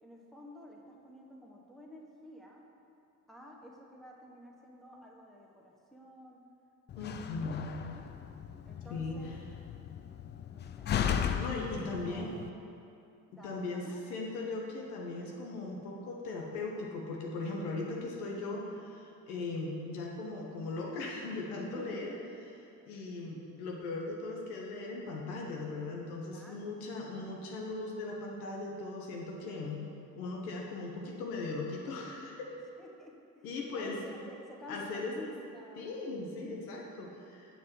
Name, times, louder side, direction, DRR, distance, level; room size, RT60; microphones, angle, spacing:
voice 1, 0.0-2.6 3.3-6.5 6.9-7.3 7.8-8.1 8.6-9.3 10.5-11.8 12.1-12.5 13.3-14.0 21.7-22.1 26.3-26.7 32.8-35.9, left 1 dB, ahead, -2 dB, 1.2 m, -52 dB
Slam, 6.9-12.5, left 8 dB, 25° left, 0.4 m, -36 dB
voice 2, 7.0-7.8 8.9-9.2 11.4-12.3 13.4-13.8 14.1-22.2 22.9-29.8 30.2-32.5 33.4-34.0 34.7-35.1 35.8-37.6, left 3 dB, 75° left, -1 dB, 1.0 m, -38 dB
7.4 x 3.6 x 6.1 m, 2.6 s
figure-of-eight pair, 50°, 44 cm